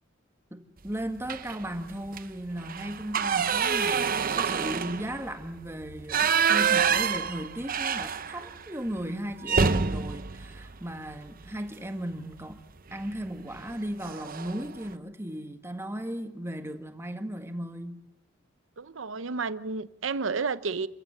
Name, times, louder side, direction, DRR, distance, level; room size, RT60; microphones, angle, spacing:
voice 1, 0.5-12.6 12.9-18.0, right 1 dB, 15° right, 1.7 m, -36 dB
sound 1, 1.2-1.7 2.1-2.2 2.6-8.6 8.9-9.0 9.4-11.6 12.9-13.2 13.6-13.7 14.0-14.6, right 6 dB, 45° right, 0.9 m, -27 dB
voice 2, 18.8-20.9, right 4 dB, 80° right, 0.8 m, -31 dB
28.0 x 15.5 x 7.9 m
head